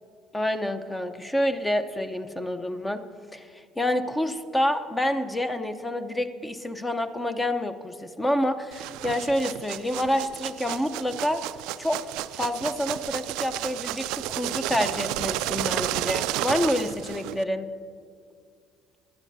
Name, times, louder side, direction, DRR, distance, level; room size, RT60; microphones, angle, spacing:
voice 1, 0.3-3.0 3.3-11.4 11.8-12.0 12.3-17.7, left 1 dB, 15° left, 9 dB, 0.8 m, -28 dB
sound 1, 8.7-17.4, right 15 dB, 70° right, 0.3 m, -32 dB
19.0 x 11.5 x 2.7 m, 2.3 s
hypercardioid pair, 55°, 0 cm